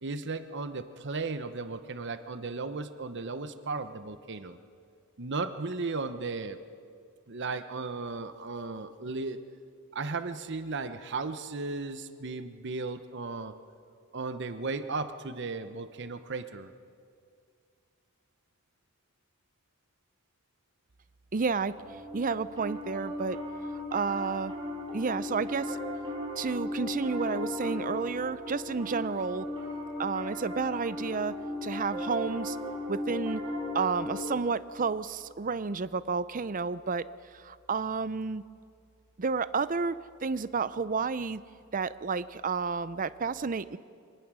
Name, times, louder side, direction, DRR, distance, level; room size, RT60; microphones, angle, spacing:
voice 1, 0.0-4.6 5.2-6.6 7.3-9.4 9.9-13.5 14.1-16.7, right 3 dB, 55° right, 10 dB, 0.9 m, -35 dB
voice 2, 21.3-21.7 22.1-23.4 23.9-24.5 24.9-25.8 26.4-29.5 30.0-31.3 31.6-32.6 32.9-33.4 33.7-37.0 37.3-38.4 39.2-41.4 41.7-43.8, right 5 dB, 40° right, 15 dB, 0.5 m, -31 dB
Piano, 21.8-34.2, left 1 dB, 25° right, 4.6 m, -36 dB
25.0 x 19.0 x 6.3 m, 2.3 s
head